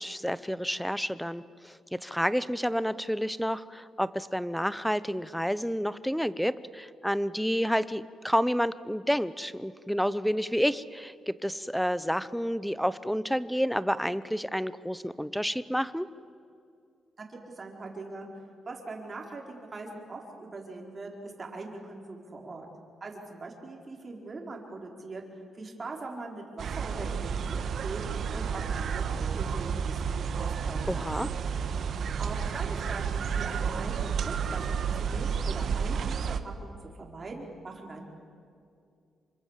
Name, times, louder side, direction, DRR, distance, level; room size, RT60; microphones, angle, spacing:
voice 1, 0.0-16.1 30.9-31.3, equal, ahead, 16 dB, 0.7 m, -29 dB
voice 2, 17.2-18.3 18.7-22.7 23.0-25.2 25.5-28.0 28.3-30.9 32.2-38.0, right 3 dB, 35° right, 0 dB, 4.7 m, -41 dB
sound 1, 26.6-36.4, right 6 dB, 65° right, 1.2 m, -31 dB
27.5 x 25.0 x 7.5 m, 2.4 s
cardioid pair, 105°, 0 cm